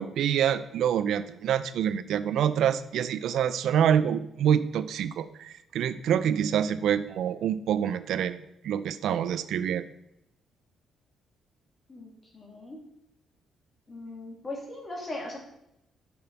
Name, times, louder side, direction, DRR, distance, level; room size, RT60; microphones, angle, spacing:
voice 1, 0.0-9.8, right 9 dB, 75° right, 14 dB, 0.3 m, -26 dB
voice 2, 11.9-12.8 13.9-15.4, left 2 dB, 30° left, -1 dB, 2.3 m, -39 dB
6.9 x 6.1 x 3.9 m, 0.82 s
cardioid pair, 90°, 0 cm